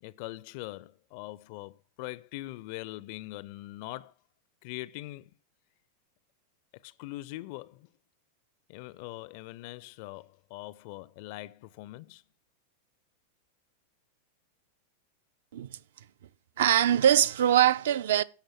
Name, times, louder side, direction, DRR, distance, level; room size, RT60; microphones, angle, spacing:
voice 1, 0.0-4.1 4.6-5.3 6.7-7.9 8.7-12.2, left 18 dB, 45° left, 0.4 m, -42 dB
voice 2, 16.6-18.2, right 10 dB, 60° right, 0.5 m, -22 dB
17.0 x 6.4 x 3.0 m
figure-of-eight pair, 90°, 0 cm